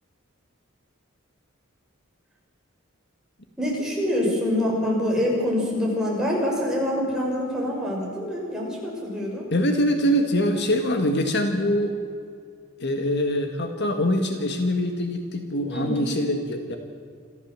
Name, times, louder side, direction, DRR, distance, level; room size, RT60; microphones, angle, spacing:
voice 1, 3.6-9.5 15.7-16.1, left 1 dB, 5° right, -3 dB, 6.0 m, -25 dB
voice 2, 9.5-11.9 12.8-16.8, equal, 55° left, 5 dB, 1.8 m, -24 dB
27.0 x 14.5 x 7.6 m, 2.2 s
head